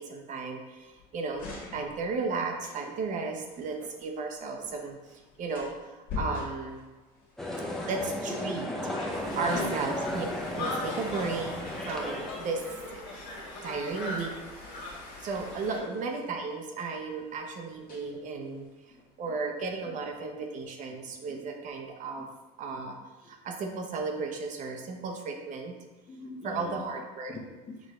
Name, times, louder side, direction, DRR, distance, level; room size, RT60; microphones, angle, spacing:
voice 1, 0.0-1.5 1.7-5.0 5.4-6.8 7.9-8.7 9.4-10.3 10.6-11.6 11.9-12.6 12.9-13.0 13.6-14.3 15.2-18.7 19.2-22.3 22.6-22.9 23.2-25.7 26.4-27.3, right 4 dB, 45° right, 3 dB, 0.8 m, -34 dB
sound 1, 0.7-19.2, left 3 dB, 50° left, 1.4 m, -46 dB
sound 2, 7.4-12.6, left 1 dB, ahead, 0.7 m, -35 dB
voice 2, 8.9-9.4 9.6-10.0 15.7-15.9 18.9-19.4 19.8-20.0 21.1-21.5 22.2-22.3 23.2-23.3 26.1-26.8 27.3-27.8, left 3 dB, 30° left, -1 dB, 1.1 m, -44 dB
Conversation, 9.1-15.8, left 2 dB, 70° left, 1.4 m, -40 dB
6.1 x 2.5 x 3.2 m, 1.2 s
supercardioid pair, 105°, 18 cm